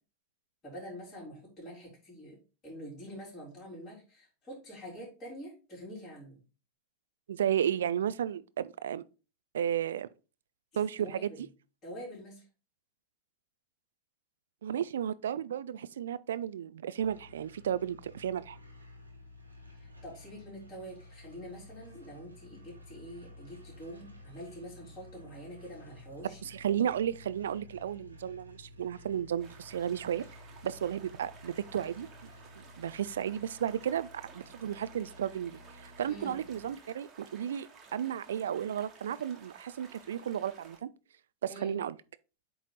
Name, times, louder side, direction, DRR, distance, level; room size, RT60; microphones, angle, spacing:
voice 1, 0.6-2.4 2.6-6.4 11.0-11.4 11.8-12.4 19.7-26.4 36.1-36.4 41.5-41.8, equal, 25° left, 3.8 m, -46 dB
voice 2, 7.3-9.0 9.5-10.1 10.8-11.3 14.6-18.6 26.4-30.2 30.6-32.1 32.6-34.1 34.3-40.9 41.4-41.9, right 9 dB, 65° right, 0.3 m, -33 dB
sound 1, 17.0-36.8, left 2 dB, 85° right, 1.3 m, -53 dB
sound 2, 29.4-40.8, right 5 dB, 25° right, 1.5 m, -55 dB
8.3 x 3.1 x 3.9 m
figure-of-eight pair, 90°, 0 cm